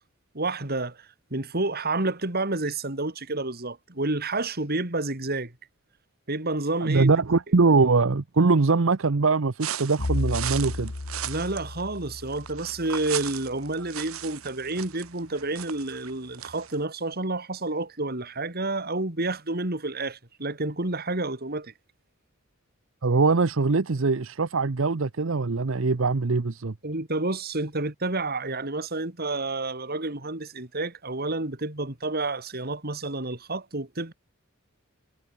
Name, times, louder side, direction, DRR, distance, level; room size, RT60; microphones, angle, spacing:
voice 1, 0.3-5.5 6.3-7.1 11.2-21.7 26.8-34.1, right 2 dB, 45° right, 3.0 m, -29 dB
voice 2, 6.8-10.9 23.0-26.7, right 4 dB, 65° right, 0.8 m, -22 dB
sound 1, 9.6-16.8, right 11 dB, 90° right, 1.4 m, -37 dB
Bowed string instrument, 10.0-14.2, left 2 dB, 80° left, 1.2 m, -34 dB
head